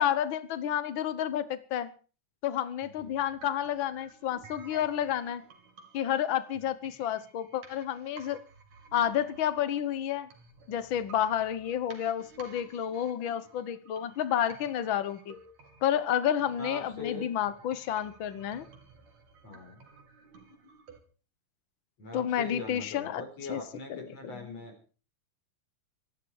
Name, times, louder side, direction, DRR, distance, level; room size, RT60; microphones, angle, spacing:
voice 1, 0.0-1.9 2.4-5.4 5.9-8.4 8.9-10.3 10.7-15.3 15.8-18.7 22.1-23.6 23.9-24.0 24.5-24.6, left 10 dB, 85° left, 13 dB, 1.1 m, -30 dB
voice 2, 2.8-3.2 6.6-6.7 16.6-17.3 19.4-19.8 22.0-24.7, left 3 dB, 50° left, 3 dB, 5.5 m, -41 dB
sound 1, 3.0-21.0, right 4 dB, 55° right, 4.1 m, -54 dB
24.5 x 12.0 x 4.7 m, 0.38 s
omnidirectional pair, 3.8 m